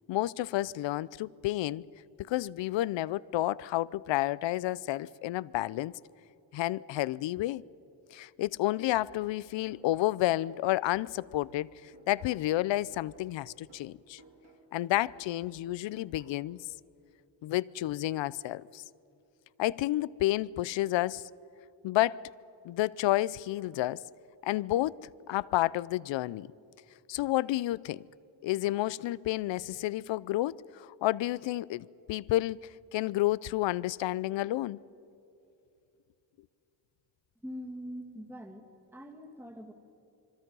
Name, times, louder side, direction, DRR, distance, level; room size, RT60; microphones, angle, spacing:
voice 1, 0.1-1.8 2.2-5.9 6.5-7.6 8.1-14.2 14.7-16.6 17.4-18.8 19.6-21.2 21.8-22.2 22.6-24.0 24.4-26.5 27.1-28.0 28.4-32.6 32.9-34.8, left 16 dB, 70° left, 0.6 m, -30 dB
sound 1, 8.9-12.6 12.9-16.6, right 3 dB, 65° right, 5.9 m, -59 dB
voice 2, 37.4-38.7 38.9-39.7, equal, 5° right, 2.0 m, -43 dB
26.0 x 24.0 x 5.5 m
cardioid pair, 135°, 46 cm